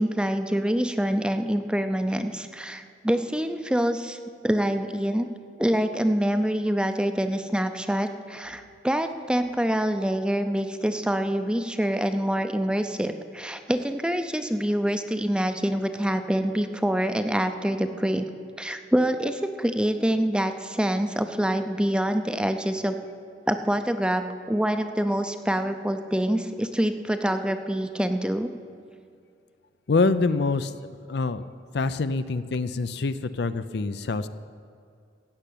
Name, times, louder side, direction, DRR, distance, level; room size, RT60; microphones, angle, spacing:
voice 1, 0.0-5.3 5.6-18.3 18.6-22.9 23.5-28.5, equal, 5° right, 8 dB, 0.6 m, -26 dB
voice 2, 29.9-31.4 31.7-34.3, left 3 dB, 65° left, 12 dB, 0.5 m, -25 dB
16.0 x 6.7 x 8.5 m, 2.4 s
head